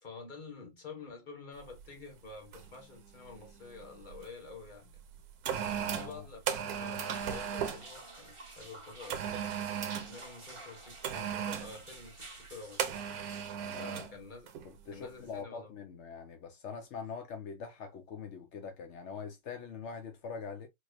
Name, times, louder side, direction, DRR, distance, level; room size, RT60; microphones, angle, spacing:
voice 1, 0.0-5.1 5.9-9.5 10.1-13.2 13.7-14.5 14.9-15.7, left 4 dB, 30° left, 1.4 m, -49 dB
sound 1, 1.7-1.9 2.5-2.8 3.1-4.3 4.9-7.9 9.1-10.2 11.0-11.7 12.8-14.1 14.5-14.7, right 8 dB, 65° right, 1.1 m, -36 dB
voice 2, 5.8-6.2 13.6-14.1 14.6-20.7, left 5 dB, 70° left, 0.6 m, -43 dB
sound 2, 7.0-13.6, right 2 dB, 25° right, 0.6 m, -51 dB
4.3 x 3.0 x 2.3 m
omnidirectional pair, 2.0 m